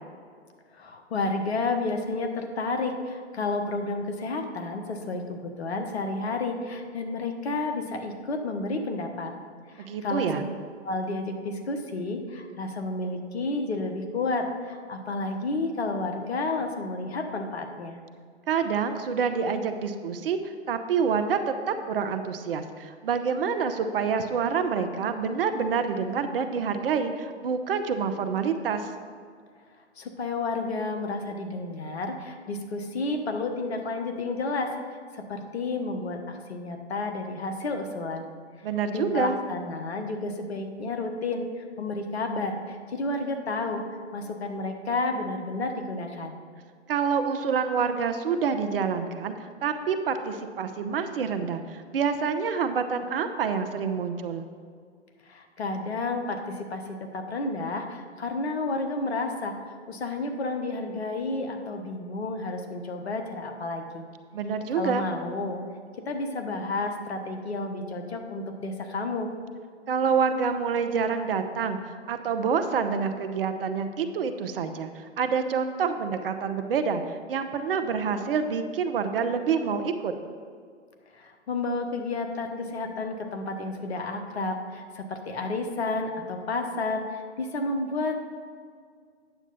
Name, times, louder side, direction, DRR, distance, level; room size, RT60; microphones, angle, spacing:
voice 1, 0.7-9.3 9.7-10.4 10.8-18.0 30.0-34.7 35.1-38.3 38.9-43.8 44.1-46.4 55.3-59.5 59.9-64.1 64.8-65.6 66.0-69.3 81.1-88.2, left 3 dB, 65° left, 5 dB, 1.2 m, -31 dB
voice 2, 9.8-10.4 18.5-21.4 21.7-28.9 38.6-39.4 46.9-49.3 49.6-54.4 64.3-65.0 69.9-71.8 72.1-77.0 77.3-80.1, right 6 dB, 55° right, 9 dB, 0.8 m, -27 dB
9.1 x 7.3 x 4.0 m, 2.1 s
figure-of-eight pair, 120°, 34 cm